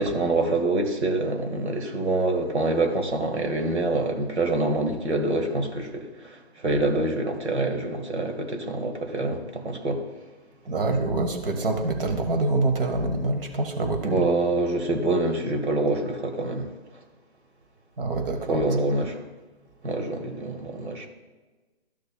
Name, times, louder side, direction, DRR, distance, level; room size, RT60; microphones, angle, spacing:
voice 1, 0.0-10.0 14.0-16.7 18.5-19.2 19.8-21.1, right 2 dB, 80° right, 5 dB, 1.7 m, -26 dB
voice 2, 10.7-14.2 18.0-18.6, right 2 dB, 55° right, 5 dB, 1.4 m, -25 dB
13.0 x 6.5 x 2.3 m, 1.2 s
hypercardioid pair, 150°, 33 cm